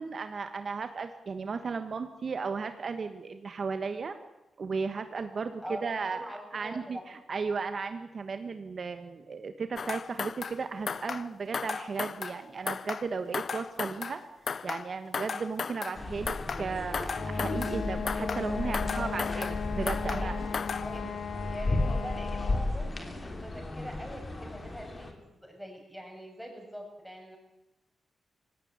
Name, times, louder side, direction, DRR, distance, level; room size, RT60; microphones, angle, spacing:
voice 1, 0.0-4.2 4.6-6.3 6.5-14.2 14.6-20.4, right 5 dB, 50° right, 8 dB, 1.3 m, -35 dB
voice 2, 5.6-7.0 18.7-19.3 20.0-21.1 21.5-27.4, equal, ahead, 2 dB, 7.3 m, -44 dB
sound 1, 9.8-10.6 10.9-11.3 11.5-12.4 12.7-13.1 13.3-14.2 14.5-14.9 15.1-16.0 16.3-16.7 16.9-17.8 18.1-18.5 18.7-19.6 19.9-20.3 20.5-20.9, left 5 dB, 55° left, 0.7 m, -35 dB
sound 2, 15.9-25.1, left 2 dB, 30° left, 3.4 m, -34 dB
Wind instrument woodwind instrument, 17.1-22.8, left 6 dB, 85° left, 1.6 m, -37 dB
18.5 x 17.0 x 9.6 m, 0.96 s
cardioid pair, 95°, 0 cm